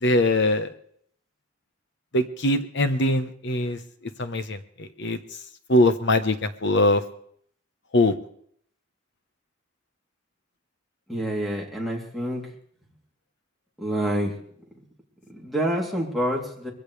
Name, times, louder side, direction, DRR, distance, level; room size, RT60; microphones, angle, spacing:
voice 1, 0.0-0.7 2.1-3.8 4.2-5.2 5.7-7.0 7.9-8.1, left 1 dB, 65° left, 10 dB, 1.1 m, -22 dB
voice 2, 11.1-12.4 13.8-14.3 15.3-16.7, right 1 dB, ahead, -1 dB, 3.1 m, -27 dB
21.5 x 15.5 x 3.3 m, 0.65 s
head